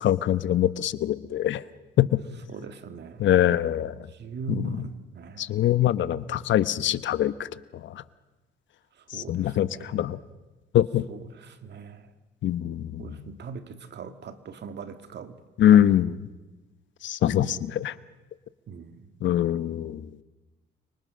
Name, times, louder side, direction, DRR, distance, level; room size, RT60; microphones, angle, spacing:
voice 1, 0.0-1.6 2.0-2.1 3.2-3.9 4.5-4.8 5.4-7.5 9.3-10.2 10.7-11.0 12.4-13.0 15.6-16.2 17.0-17.9 19.2-20.0, left 11 dB, 70° left, 15 dB, 1.0 m, -23 dB
voice 2, 2.5-3.3 4.2-5.5 9.1-10.1 11.1-12.0 13.0-15.4 15.7-15.9 17.3-17.7 18.7-19.0, right 5 dB, 60° right, 9 dB, 2.0 m, -40 dB
30.0 x 26.0 x 6.5 m, 1.1 s
cardioid pair, 90°, 20 cm